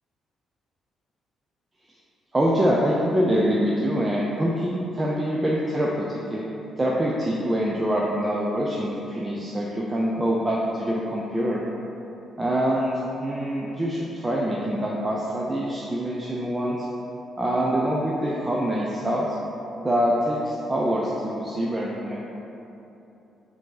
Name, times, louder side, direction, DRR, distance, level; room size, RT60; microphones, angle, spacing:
voice 1, 2.3-6.5 6.8-11.6 12.4-12.9 13.2-16.9 17.4-19.4 19.8-22.2, equal, 20° right, -4 dB, 0.4 m, -25 dB
5.0 x 2.7 x 3.8 m, 3.0 s
cardioid pair, 90°, 0 cm